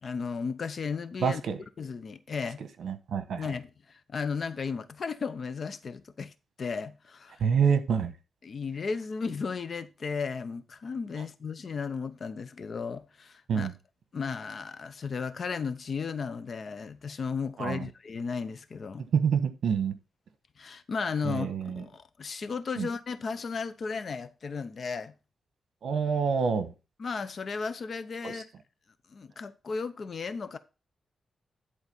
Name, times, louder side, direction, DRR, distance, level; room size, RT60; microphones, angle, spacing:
voice 1, 0.0-1.4 1.8-2.6 3.4-6.3 6.6-7.4 8.4-13.7 14.1-19.0 20.6-25.1 27.0-28.5 29.1-30.6, left 5 dB, 45° left, 0.7 m, -35 dB
voice 2, 1.2-1.6 2.8-3.5 7.4-8.1 13.5-13.7 17.6-17.9 19.1-19.9 21.2-21.8 22.8-22.9 25.8-26.7 28.2-28.4, right 6 dB, 75° right, 1.1 m, -27 dB
10.5 x 3.9 x 5.4 m
wide cardioid pair, 140°, 0 cm